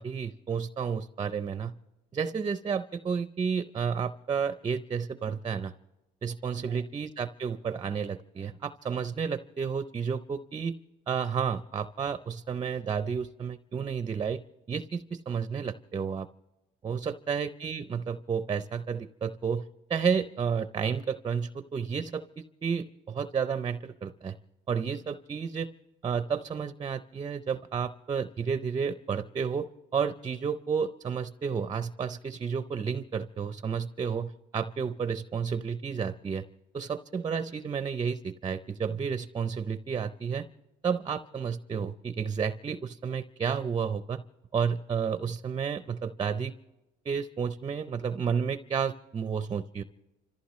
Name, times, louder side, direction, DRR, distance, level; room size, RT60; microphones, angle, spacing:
voice 1, 0.0-1.7 2.1-5.7 6.2-10.8 11.1-14.4 14.7-16.3 16.8-19.6 19.9-24.4 24.7-25.7 26.0-36.5 36.7-40.5 40.8-44.2 44.5-46.5 47.1-49.8, right 6 dB, 25° right, 12 dB, 0.5 m, -31 dB
29.5 x 14.5 x 3.1 m, 1.0 s
cardioid pair, 110°, 17 cm